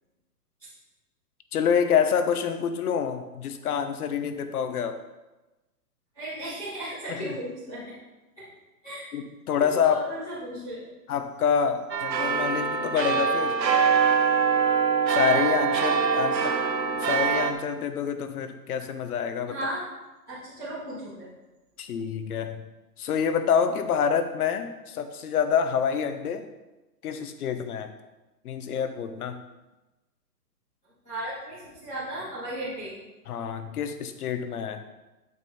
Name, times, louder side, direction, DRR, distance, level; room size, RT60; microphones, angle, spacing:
voice 1, 1.5-5.0 7.1-7.3 9.1-10.0 11.1-13.6 15.1-16.5 17.0-19.6 21.8-22.7 23.0-26.5 27.0-27.9 28.4-29.4 33.3-34.8, left 7 dB, 60° left, 8 dB, 1.2 m, -27 dB
voice 2, 6.1-7.8 8.8-9.1 9.8-10.8 16.1-16.6 19.5-19.8 20.3-21.3 31.0-32.9, right 1 dB, ahead, -24 dB, 0.3 m, -35 dB
sound 1, 11.9-17.5, right 6 dB, 90° right, 1.2 m, -23 dB
8.8 x 7.4 x 4.3 m, 1.1 s
hypercardioid pair, 135°, 49 cm